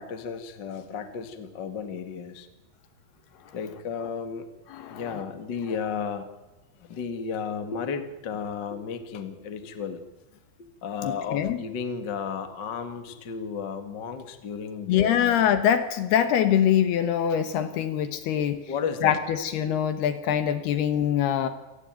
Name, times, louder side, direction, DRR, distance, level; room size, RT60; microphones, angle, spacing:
voice 1, 0.0-2.5 3.5-4.5 4.9-6.3 6.8-10.0 10.6-15.5 18.7-19.2 19.7-19.8, left 6 dB, 45° left, 8 dB, 1.5 m, -33 dB
voice 2, 4.7-5.2 11.0-11.6 14.9-18.6 19.0-21.5, left 9 dB, 70° left, 10 dB, 3.0 m, -24 dB
28.0 x 18.0 x 9.1 m, 1.1 s
omnidirectional pair, 5.3 m